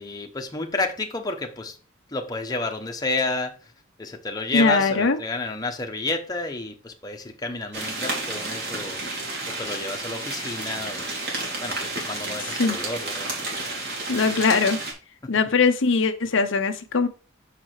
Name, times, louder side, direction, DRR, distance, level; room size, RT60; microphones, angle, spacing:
voice 1, 0.0-1.8 2.1-3.6 4.0-9.0 9.5-11.0 11.6-13.3 15.2-15.3, left 2 dB, 20° left, 1.0 m, -30 dB
voice 2, 4.5-5.2 12.6-12.8 14.1-14.8 15.3-17.1, left 4 dB, 65° left, 0.7 m, -21 dB
sound 1, 7.7-14.9, right 2 dB, 55° right, 2.8 m, -31 dB
6.7 x 4.8 x 4.6 m
head